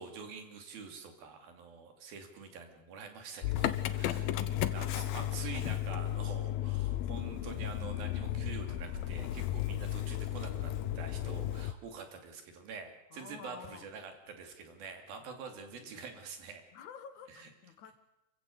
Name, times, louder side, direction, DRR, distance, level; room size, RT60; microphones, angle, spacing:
voice 1, 0.0-16.6 17.3-17.5, right 5 dB, 90° right, 5 dB, 4.5 m, -46 dB
Motor vehicle (road) / Engine starting, 3.4-11.7, left 12 dB, 85° left, 2.8 m, -34 dB
voice 2, 4.1-5.0 13.1-13.9 15.2-16.1 16.7-17.9, left 7 dB, 65° left, 10 dB, 2.7 m, -52 dB
26.5 x 16.0 x 8.2 m, 0.91 s
omnidirectional pair, 4.1 m